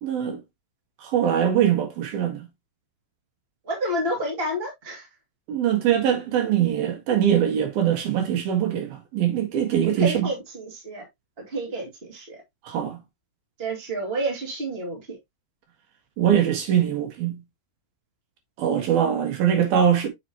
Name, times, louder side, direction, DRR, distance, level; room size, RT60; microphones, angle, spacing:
voice 1, 0.0-0.4 1.0-2.5 5.5-10.3 12.6-13.0 16.2-17.4 18.6-20.1, right 9 dB, 65° right, 2.7 m, -22 dB
voice 2, 3.6-5.0 10.0-11.1 11.4-12.4 13.6-15.2, right 1 dB, 35° right, 0.9 m, -29 dB
7.5 x 6.0 x 2.8 m
omnidirectional pair, 5.5 m